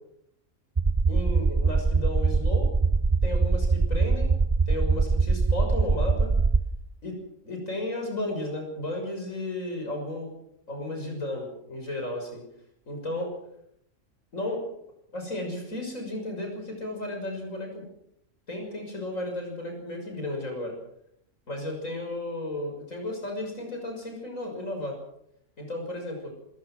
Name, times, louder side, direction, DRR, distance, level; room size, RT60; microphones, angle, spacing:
sound 1, 0.8-6.6, right 4 dB, 20° right, 0.8 m, -22 dB
voice 1, 1.1-2.7 3.2-4.3 4.7-6.3 7.0-7.1 7.4-10.3 10.7-12.4 12.9-13.3 14.3-14.6 15.1-17.8 18.5-20.8 21.5-24.9 25.6-26.3, left 1 dB, 70° left, 3 dB, 6.8 m, -33 dB
26.5 x 17.0 x 6.3 m, 0.72 s
omnidirectional pair, 1.4 m